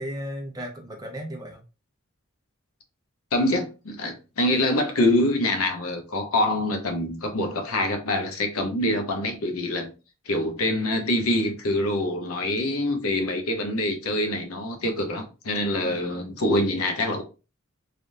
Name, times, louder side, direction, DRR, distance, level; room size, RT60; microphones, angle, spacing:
voice 1, 0.0-1.6 15.8-16.3, equal, 20° right, 0.7 m, -36 dB
voice 2, 3.3-9.9 10.3-17.2, left 1 dB, 85° left, 0.8 m, -25 dB
3.4 x 2.5 x 2.6 m
head